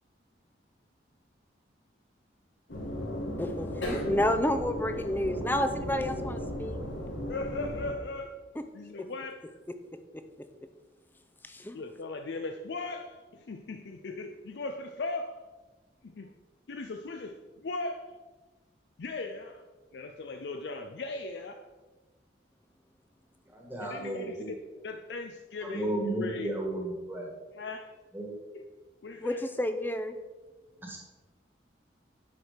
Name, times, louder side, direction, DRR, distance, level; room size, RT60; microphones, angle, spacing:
sound 1, 2.7-7.9, equal, 80° left, 1.8 m, -35 dB
voice 1, 3.4-6.8 11.4-11.8 29.2-30.1, left 1 dB, 10° left, 8 dB, 0.5 m, -30 dB
voice 2, 7.3-8.4 8.7-9.4 11.7-15.4 16.0-16.3 16.7-18.2 19.0-19.6 19.9-21.7 23.8-24.6 24.8-26.5 27.5-27.9 28.5-28.6 29.0-29.4, left 3 dB, 65° left, 6 dB, 0.5 m, -38 dB
voice 3, 23.5-24.5 25.6-27.3 28.1-28.3 30.8-31.0, right 1 dB, 10° right, -1 dB, 1.4 m, -34 dB
10.5 x 4.6 x 5.0 m, 1.3 s
head